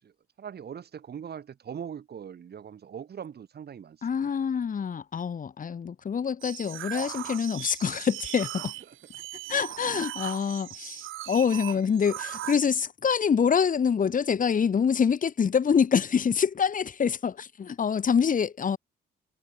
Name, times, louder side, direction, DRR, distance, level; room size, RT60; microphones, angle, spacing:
voice 1, 0.0-4.3 8.9-9.0 9.8-10.0, right 8 dB, 55° right, 5.5 m, -41 dB
voice 2, 4.0-8.7 9.5-18.8, left 7 dB, 40° left, 2.1 m, -26 dB
sound 1, 6.4-12.9, right 16 dB, 90° right, 2.6 m, -38 dB
cardioid pair, 90°, 20 cm